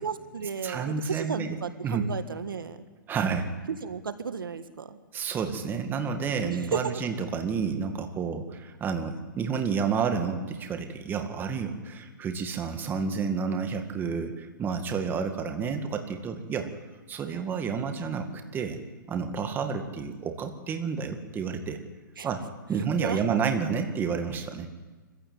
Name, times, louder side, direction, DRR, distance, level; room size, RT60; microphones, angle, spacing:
voice 1, 0.0-2.8 3.7-5.0 6.7-6.8 22.2-22.3 23.0-23.2, right 6 dB, 90° right, 10 dB, 1.7 m, -33 dB
voice 2, 0.6-1.6 1.8-2.1 3.1-3.5 5.1-16.7 17.1-18.8 19.1-21.8 22.2-24.7, right 6 dB, 20° right, 6 dB, 2.1 m, -30 dB
24.5 x 15.5 x 9.1 m, 1.3 s
hypercardioid pair, 140°, 11 cm